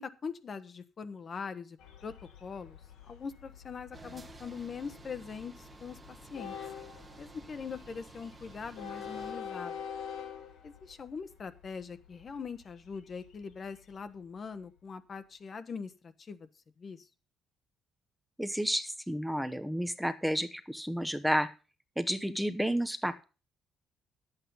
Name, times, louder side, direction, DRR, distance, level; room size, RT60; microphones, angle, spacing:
voice 1, 0.0-1.8 2.0-2.1 2.4-2.8 3.1-6.5 7.2-9.8 10.6-16.5 16.8-17.1, left 5 dB, 45° left, 11 dB, 1.0 m, -42 dB
Train, 1.8-14.8, left 7 dB, 90° left, 1.7 m, -47 dB
sound 1, 3.9-9.3, right 3 dB, 30° right, 1.3 m, -52 dB
voice 2, 18.4-21.5 22.0-23.2, equal, 5° right, 9 dB, 0.9 m, -31 dB
9.9 x 8.1 x 5.4 m, 0.34 s
cardioid pair, 90°, 0 cm